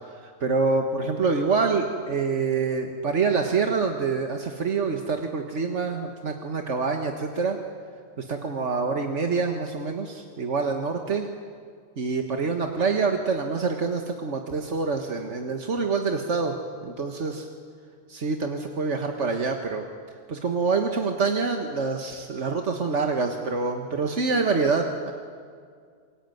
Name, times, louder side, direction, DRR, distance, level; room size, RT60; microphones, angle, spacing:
voice 1, 0.2-7.6 8.2-11.3 12.0-16.6 16.8-17.5 18.1-19.9 20.3-25.1, right 4 dB, 85° right, 4 dB, 1.9 m, -26 dB
28.0 x 22.5 x 9.4 m, 2.1 s
omnidirectional pair, 1.2 m